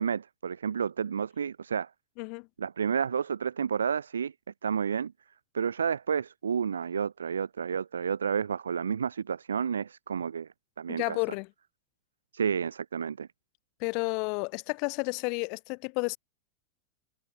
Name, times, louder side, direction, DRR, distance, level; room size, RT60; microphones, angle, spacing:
voice 1, 0.0-1.9 2.6-4.3 4.6-5.1 5.5-10.5 10.8-11.2 12.3-13.3, right 7 dB, 90° right, 0.4 m, -30 dB
voice 2, 2.2-2.5 10.9-11.5 13.8-16.2, left 35 dB, 55° left, 0.3 m, -31 dB
hypercardioid pair, 100°, 0 cm